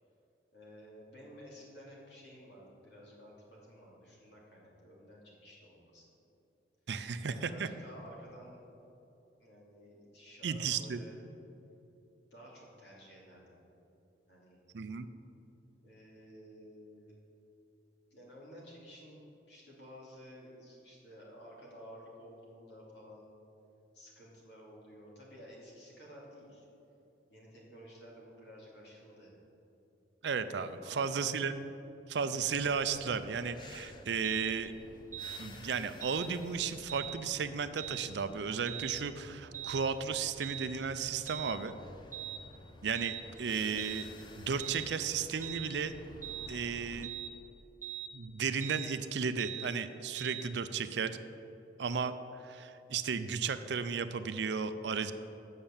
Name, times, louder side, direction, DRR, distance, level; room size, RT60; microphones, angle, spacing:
voice 1, 0.5-6.1 7.2-8.6 9.4-11.2 12.3-13.6 14.3-14.6 15.8-17.2 18.1-23.4 23.9-26.7 27.3-29.3 30.7-31.2, equal, 70° left, -4 dB, 2.7 m, -53 dB
voice 2, 6.9-7.7 10.4-11.0 14.7-15.1 30.2-31.5 32.1-34.7 35.4-41.8 42.8-44.1 44.4-45.9 46.5-47.1 48.1-51.2 51.8-55.1, right 6 dB, 70° right, 11 dB, 0.5 m, -34 dB
sound 1, 32.5-47.0, left 1 dB, 25° left, 0.6 m, -52 dB
sound 2, 34.2-34.5 35.1-35.4 36.0-36.3 36.9-37.2 37.8-38.1 38.7-38.9 39.5-39.8 40.4-40.7 41.3-41.5 42.1-42.4 42.9-43.2 43.8-44.1 44.6-44.9 45.4-45.7 46.2-46.5 47.0-47.3 47.8-48.1 48.6-48.9 49.4-49.7 50.2-50.4, right 12 dB, 10° right, 1.1 m, -41 dB
8.8 x 6.5 x 7.2 m, 2.9 s
head